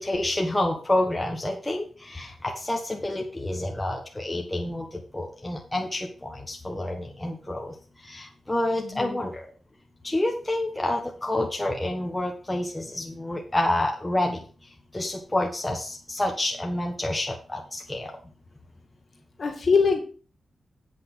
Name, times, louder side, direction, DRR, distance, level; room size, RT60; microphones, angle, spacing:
voice 1, 0.0-7.7 8.0-9.4 10.0-14.4 14.9-18.1, left 1 dB, 10° left, 0 dB, 1.3 m, -28 dB
voice 2, 8.8-9.2 19.4-20.0, left 5 dB, 45° left, 1 dB, 2.2 m, -23 dB
8.4 x 6.1 x 6.0 m, 0.39 s
wide cardioid pair, 155°, 0 cm